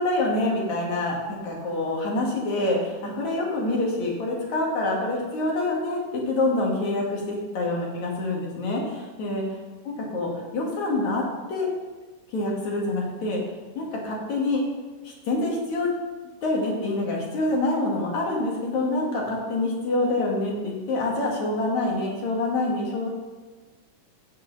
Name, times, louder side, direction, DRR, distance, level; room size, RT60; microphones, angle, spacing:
voice 1, 0.0-9.4 9.9-11.7 12.3-13.4 13.8-14.6 15.0-15.9 16.4-23.1, left 2 dB, 65° left, -2 dB, 3.4 m, -26 dB
16.0 x 6.6 x 4.1 m, 1.3 s
omnidirectional pair, 3.6 m